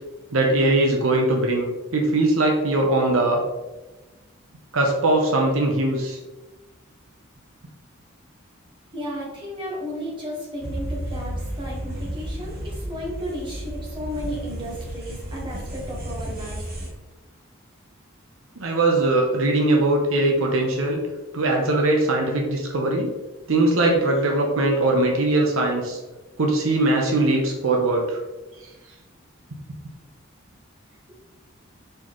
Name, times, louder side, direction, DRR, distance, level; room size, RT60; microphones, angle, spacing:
voice 1, 0.3-1.7 1.9-3.4 4.7-6.2 18.6-21.0 21.3-23.1 23.5-26.0 26.4-28.2, right 2 dB, 75° right, 0 dB, 0.7 m, -21 dB
voice 2, 8.9-16.6, equal, 25° right, -4 dB, 1.3 m, -34 dB
sound 1, 10.6-16.9, right 1 dB, 45° right, 1.2 m, -33 dB
4.5 x 3.8 x 3.0 m, 1.1 s
head